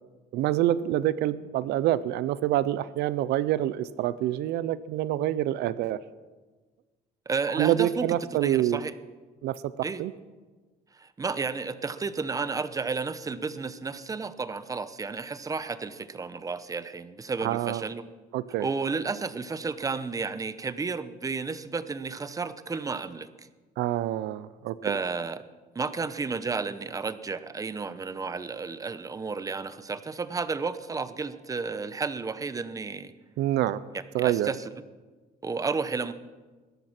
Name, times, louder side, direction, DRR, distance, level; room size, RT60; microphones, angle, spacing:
voice 1, 0.3-6.0 7.5-8.8 9.4-10.1 17.4-17.8 18.3-18.7 23.8-25.0 33.4-33.8 34.1-34.5, right 13 dB, 80° right, 17 dB, 0.6 m, -27 dB
voice 2, 7.3-8.9 9.8-10.0 10.9-18.0 18.6-23.3 24.8-25.4 25.7-33.1 33.9-34.7 35.4-36.1, right 4 dB, 20° right, 13 dB, 0.8 m, -32 dB
20.5 x 11.0 x 5.9 m, 1.3 s
cardioid pair, 110°, 17 cm